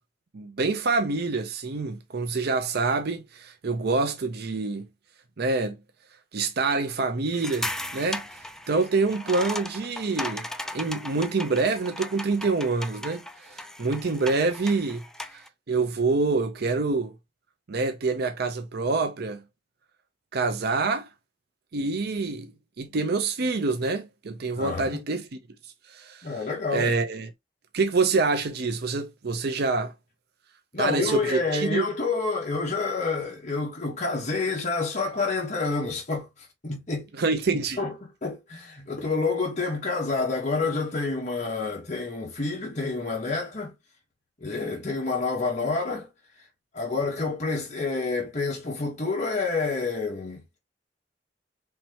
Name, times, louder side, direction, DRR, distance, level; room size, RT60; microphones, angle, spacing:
voice 1, 0.3-4.8 5.4-5.8 6.3-8.2 8.7-10.5 10.7-15.0 15.7-17.1 17.7-19.4 20.3-21.1 21.7-22.5 22.8-25.2 25.9-26.3 26.7-27.3 27.7-29.9 30.8-31.9 37.2-37.8, right 3 dB, 60° right, 0.6 m, -26 dB
sound 1, 7.3-15.5, left 1 dB, 5° left, 0.4 m, -37 dB
voice 2, 24.5-25.0 26.2-26.9 30.7-37.1 37.8-43.7 44.4-46.1 46.7-50.6, left 3 dB, 40° left, 1.2 m, -28 dB
4.4 x 3.3 x 2.9 m
head